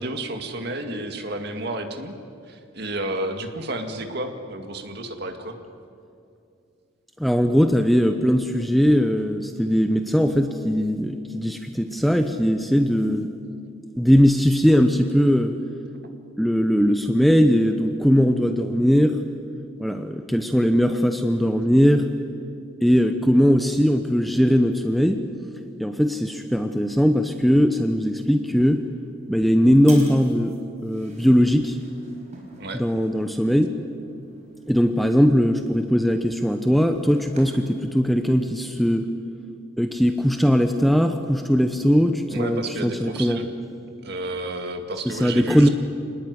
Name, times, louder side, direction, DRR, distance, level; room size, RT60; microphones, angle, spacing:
voice 1, 0.0-2.1 2.5-5.6 32.6-32.8 42.3-43.5 44.0-45.7, right 1 dB, 50° right, 5 dB, 2.2 m, -31 dB
voice 2, 7.2-13.3 14.0-15.6 16.4-19.2 19.8-22.1 22.8-25.3 25.8-28.9 29.3-31.8 32.7-33.7 34.7-39.1 39.8-43.4 45.0-45.7, equal, ahead, 6 dB, 0.8 m, -20 dB
sound 1, 28.6-37.8, right 4 dB, 35° right, 4.9 m, -49 dB
25.5 x 20.0 x 9.7 m, 2.5 s
head